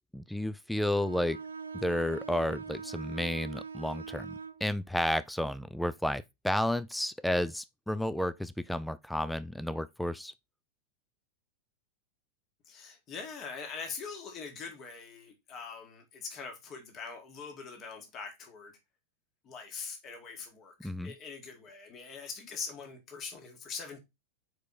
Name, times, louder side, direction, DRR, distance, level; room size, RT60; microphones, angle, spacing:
voice 1, 0.1-1.4 1.7-4.3 4.6-10.3 20.8-21.1, left 1 dB, ahead, 0.4 m, -32 dB
Bowed string instrument, 0.9-4.6, right 5 dB, 75° right, 0.4 m, -42 dB
voice 2, 12.7-18.8 19.4-24.0, left 5 dB, 30° left, 1.9 m, -43 dB
4.9 x 4.7 x 4.1 m
figure-of-eight pair, 90°, 0 cm